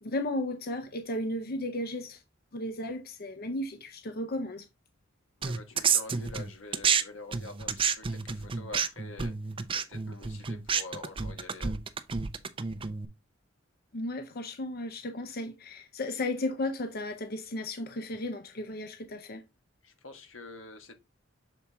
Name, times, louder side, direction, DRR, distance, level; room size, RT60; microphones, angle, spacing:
voice 1, 0.0-2.2 2.5-4.6 13.9-19.4, left 1 dB, 50° left, 0.7 m, -34 dB
voice 2, 5.4-9.3 9.7-11.8 19.8-20.9, left 2 dB, 85° left, 1.5 m, -46 dB
sound 1, 5.4-7.0 7.3-13.1, right 6 dB, 25° right, 0.5 m, -29 dB
7.0 x 4.2 x 3.4 m
head